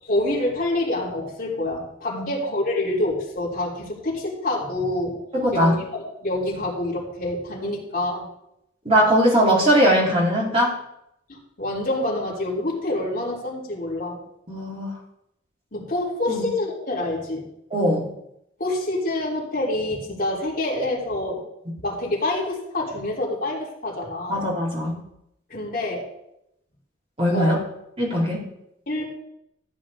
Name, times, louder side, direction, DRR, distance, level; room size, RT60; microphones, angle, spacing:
voice 1, 0.0-5.1 5.5-5.8 6.2-8.3 11.3-14.2 15.7-17.4 18.6-21.5 21.8-24.5 25.5-26.1 27.3-27.6 28.9-29.1, left 1 dB, 45° left, -5 dB, 3.7 m, -27 dB
voice 2, 5.4-5.7 8.8-10.7 14.5-14.9 16.3-16.4 17.7-18.1 24.3-25.0 27.2-27.6 28.0-28.4, equal, 30° right, -5 dB, 4.0 m, -20 dB
15.0 x 9.2 x 3.8 m, 0.79 s
head